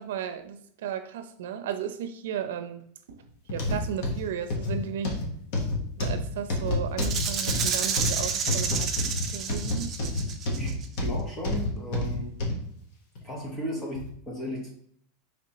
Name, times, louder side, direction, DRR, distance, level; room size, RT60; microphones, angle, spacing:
voice 1, 0.0-3.2 3.5-5.2 6.0-9.9, right 8 dB, 80° right, 9 dB, 0.5 m, -35 dB
sound 1, 3.5-12.6 13.2-13.3 14.0-14.1, left 2 dB, 50° left, 1.0 m, -29 dB
Rattle (instrument), 7.0-10.8, right 6 dB, 20° right, 0.5 m, -30 dB
voice 2, 10.6-12.4 13.2-14.7, equal, 15° left, -2 dB, 0.7 m, -35 dB
5.1 x 3.3 x 2.8 m, 0.66 s
supercardioid pair, 165°, 0 cm